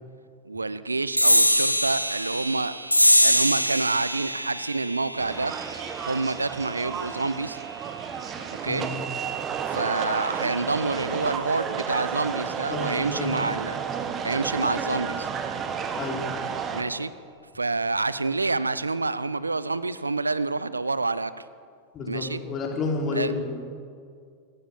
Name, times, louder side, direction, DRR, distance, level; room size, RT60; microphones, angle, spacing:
voice 1, 0.5-2.8 3.2-5.5 6.0-7.6 8.6-8.8 9.7-13.8 14.2-15.3 16.7-17.1 17.5-21.3 22.1-22.4 23.1-23.3, right 3 dB, 80° right, 16 dB, 0.6 m, -27 dB
sound 1, 1.2-8.0, equal, 90° left, 1.2 m, -24 dB
sound 2, 5.2-16.8, right 7 dB, 25° right, 1.9 m, -32 dB
voice 2, 12.7-13.3 16.0-16.2 21.9-23.6, left 3 dB, 30° left, 0 dB, 4.6 m, -30 dB
26.5 x 14.5 x 7.2 m, 2.2 s
figure-of-eight pair, 90°, 0 cm